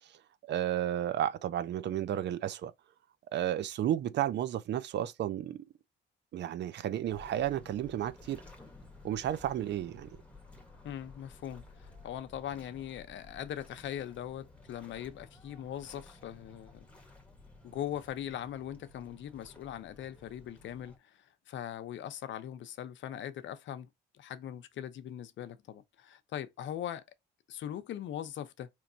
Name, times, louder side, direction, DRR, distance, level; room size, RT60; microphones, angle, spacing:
voice 1, 0.5-2.7 3.3-5.6 6.3-8.4 9.0-10.1, right 11 dB, 60° right, 0.5 m, -32 dB
sound 1, 7.0-21.0, left 3 dB, 5° left, 1.2 m, -55 dB
voice 2, 10.8-16.9 17.6-23.9 24.2-27.0 27.5-28.7, left 10 dB, 70° left, 0.6 m, -41 dB
4.5 x 3.0 x 2.6 m
cardioid pair, 90°, 20 cm